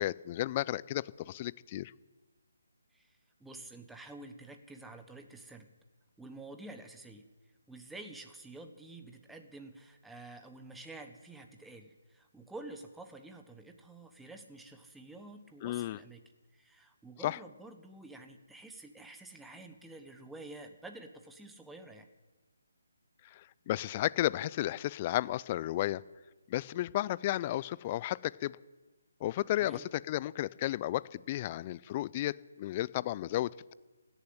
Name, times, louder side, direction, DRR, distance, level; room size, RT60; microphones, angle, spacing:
voice 1, 0.0-1.9 15.6-16.0 17.2-17.4 23.2-26.0 26.5-28.6 29.2-33.7, left 14 dB, 30° left, 22 dB, 0.4 m, -33 dB
voice 2, 2.9-5.7 6.2-7.3 7.7-16.2 16.5-22.1 29.6-29.8, right 2 dB, 5° right, 5 dB, 1.0 m, -49 dB
16.5 x 7.1 x 9.9 m, 1.3 s
figure-of-eight pair, 150°, 0 cm